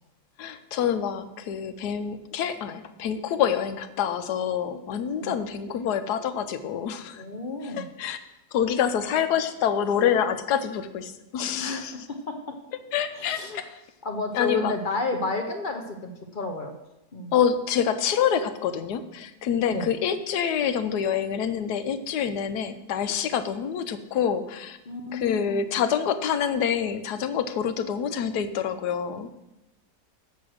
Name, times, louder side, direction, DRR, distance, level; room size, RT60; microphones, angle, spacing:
voice 1, 0.4-7.2 7.8-8.2 8.5-11.9 12.9-13.7 14.3-14.7 17.3-24.8 25.1-29.3, left 8 dB, 75° left, 10 dB, 1.3 m, -26 dB
voice 2, 7.2-7.9 11.6-12.3 13.1-13.6 14.0-16.7 17.1-17.3 19.7-19.9 24.9-25.6, left 3 dB, 45° left, 4 dB, 0.7 m, -31 dB
7.5 x 6.9 x 6.3 m, 0.93 s
omnidirectional pair, 1.8 m